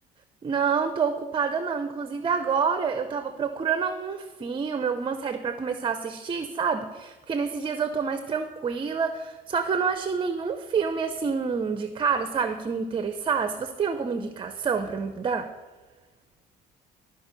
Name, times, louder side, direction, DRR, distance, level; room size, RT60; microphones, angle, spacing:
voice 1, 0.4-15.5, right 6 dB, 30° right, 9 dB, 0.6 m, -28 dB
13.0 x 5.2 x 6.6 m, 1.2 s
cardioid pair, 110°, 17 cm